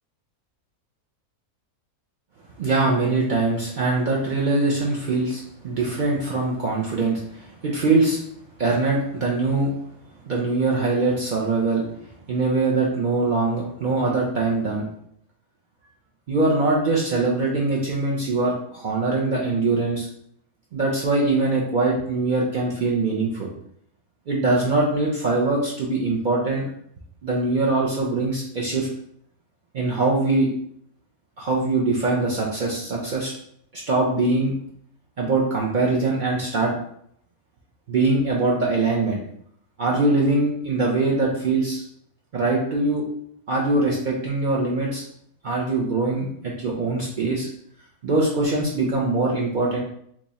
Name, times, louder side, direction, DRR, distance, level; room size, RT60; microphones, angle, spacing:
voice 1, 2.6-8.2 8.6-9.7 10.2-11.8 12.3-14.8 16.3-20.1 20.7-23.5 24.3-26.6 27.2-28.9 29.7-30.5 31.4-33.3 33.7-34.5 35.2-36.7 37.9-39.2 39.8-41.8 42.3-43.0 43.5-45.0 45.4-46.3 46.6-47.5 48.0-49.8, right 3 dB, 85° right, -3 dB, 0.4 m, -22 dB
3.0 x 2.3 x 3.9 m, 0.67 s
omnidirectional pair, 1.6 m